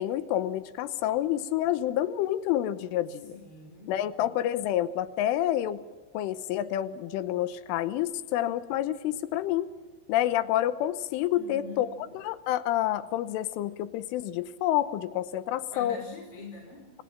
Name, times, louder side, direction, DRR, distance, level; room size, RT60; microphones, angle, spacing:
voice 1, 0.0-3.3 3.9-5.8 6.2-9.7 10.1-11.9 12.2-16.0, left 12 dB, 80° left, 13 dB, 3.5 m, -28 dB
voice 2, 3.3-4.0 11.3-11.9 15.7-16.9, left 3 dB, 30° left, 1 dB, 5.4 m, -44 dB
30.0 x 26.0 x 5.9 m, 1.3 s
omnidirectional pair, 5.7 m